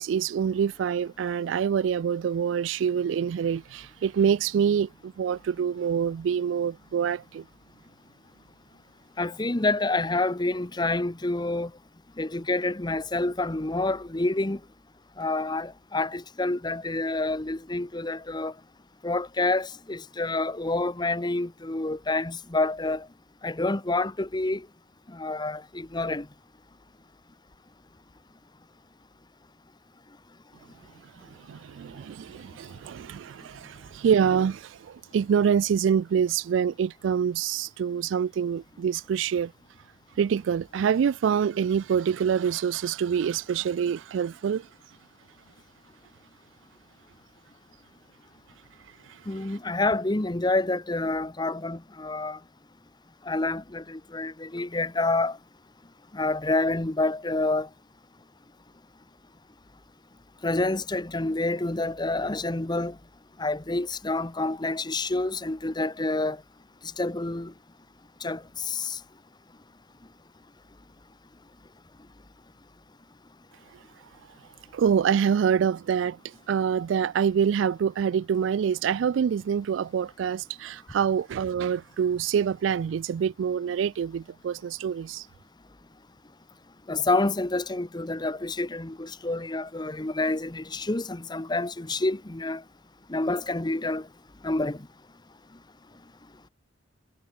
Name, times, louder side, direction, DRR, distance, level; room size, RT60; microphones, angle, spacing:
voice 1, 0.0-7.4 31.5-39.5 40.2-44.7 74.7-76.2 76.5-85.2, right 7 dB, 80° right, 0.3 m, -26 dB
voice 2, 9.2-11.7 12.2-14.6 15.2-18.5 19.0-23.1 23.4-24.7 25.1-26.3 49.3-52.4 53.3-55.4 56.1-57.7 60.4-62.9 63.4-66.4 67.0-67.5 68.2-69.0 86.9-92.6 93.1-94.1 94.4-94.8, left 2 dB, 25° left, 1.0 m, -28 dB
head